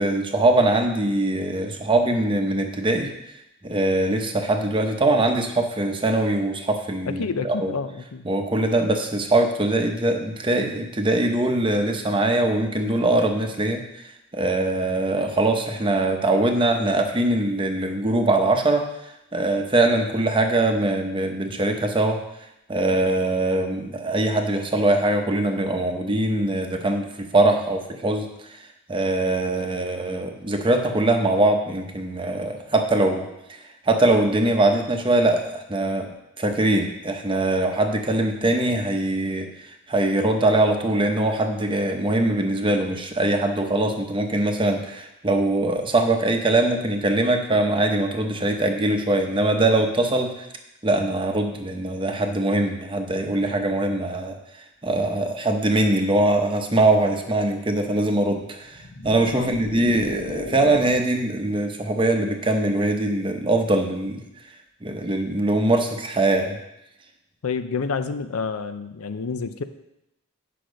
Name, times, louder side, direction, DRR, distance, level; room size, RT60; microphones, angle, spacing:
voice 1, 0.0-3.1 3.6-7.7 8.3-14.0 14.3-18.9 19.3-22.2 22.7-28.3 28.9-33.6 33.9-36.1 36.4-39.5 39.9-50.3 50.8-54.4 54.8-64.2 64.8-66.6, right 2 dB, 25° right, 4 dB, 0.8 m, -22 dB
voice 2, 7.1-8.3 59.3-59.5 67.4-69.6, left 5 dB, 75° left, 10 dB, 0.5 m, -28 dB
sound 1, 58.6-61.2, left 2 dB, 55° left, 1.2 m, -35 dB
8.2 x 5.9 x 5.1 m, 0.88 s
head